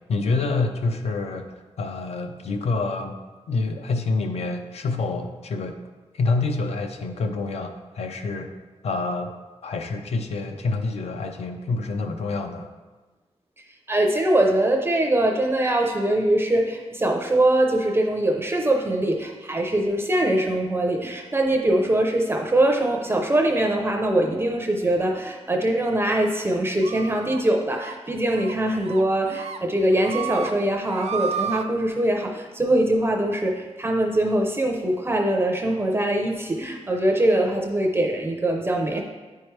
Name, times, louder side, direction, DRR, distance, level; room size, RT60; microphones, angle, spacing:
voice 1, 0.1-1.5 1.8-3.2 3.5-5.7 6.1-8.5 8.8-9.3 9.6-12.7, left 3 dB, 65° left, 5 dB, 0.6 m, -27 dB
voice 2, 13.9-39.0, right 1 dB, 20° right, 2 dB, 0.6 m, -22 dB
sound 1, 26.8-27.4 27.7-27.9 28.3-28.5 28.9-29.6 29.9-30.5 30.8-31.6, right 7 dB, 70° right, 0.4 m, -32 dB
9.3 x 4.6 x 3.2 m, 1.3 s
wide cardioid pair, 175°, 11 cm